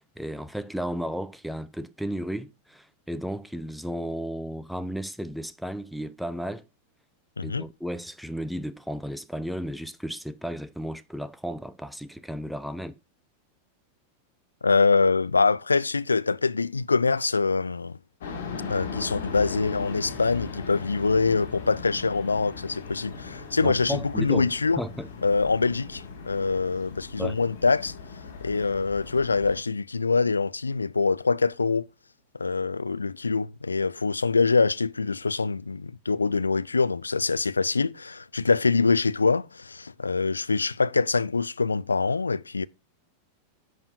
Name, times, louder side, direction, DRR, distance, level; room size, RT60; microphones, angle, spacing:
voice 1, 0.0-6.6 7.4-13.0 23.6-24.5 24.8-25.1 27.2-27.4, equal, ahead, 0.6 m, -34 dB
voice 2, 14.6-18.0 18.7-24.8 25.2-27.9 28.4-31.9 32.3-42.6, left 4 dB, 80° left, 0.3 m, -24 dB
sound 1, 18.2-29.6, left 5 dB, 60° left, 2.1 m, -39 dB
10.5 x 6.5 x 2.6 m
figure-of-eight pair, 90°, 0 cm